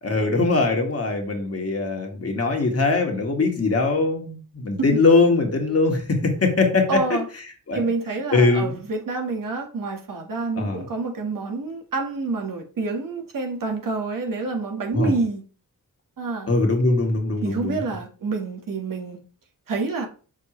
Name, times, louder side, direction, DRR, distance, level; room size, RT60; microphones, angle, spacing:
voice 1, 0.0-7.2 7.7-7.8 8.3-8.8 10.6-10.8 14.9-15.1 16.5-17.8, left 3 dB, 45° left, 1.8 m, -21 dB
voice 2, 6.9-7.2 7.7-15.4 16.2-16.5 17.4-19.2 19.7-20.1, right 3 dB, 70° right, 1.5 m, -28 dB
6.4 x 5.1 x 3.1 m
wide cardioid pair, 90°, 35 cm